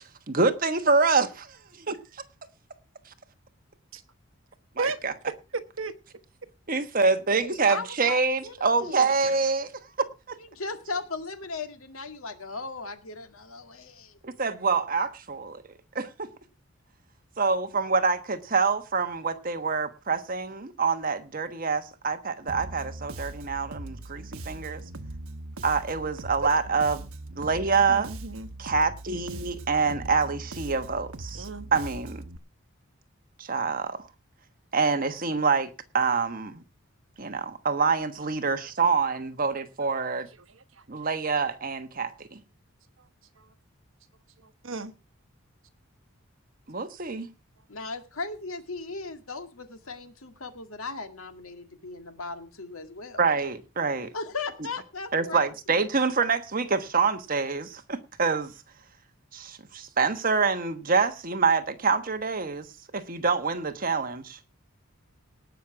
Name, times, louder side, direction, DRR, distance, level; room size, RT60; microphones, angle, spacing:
voice 1, 0.0-2.0 4.8-5.1 6.7-9.7 10.3-10.4 14.2-15.6 15.9-16.3 17.4-24.8 25.6-27.1 27.4-28.1 28.6-32.2 33.4-34.0 34.7-36.6 37.2-40.3 40.9-42.4 46.7-47.3 53.2-54.1 55.1-58.5 59.3-62.7 62.9-64.4, right 4 dB, 40° right, 1.3 m, -26 dB
voice 2, 5.3-5.9 27.9-28.5 31.3-31.7 40.4-40.8 43.4-43.5 44.4-44.9, right 3 dB, 70° right, 1.2 m, -34 dB
voice 3, 7.4-8.2 8.4-9.1 10.5-14.2 47.7-53.2 54.1-55.5, left 4 dB, 85° left, 2.0 m, -37 dB
Bass guitar, 22.5-32.4, right 2 dB, 90° right, 1.0 m, -40 dB
18.5 x 6.3 x 5.8 m
head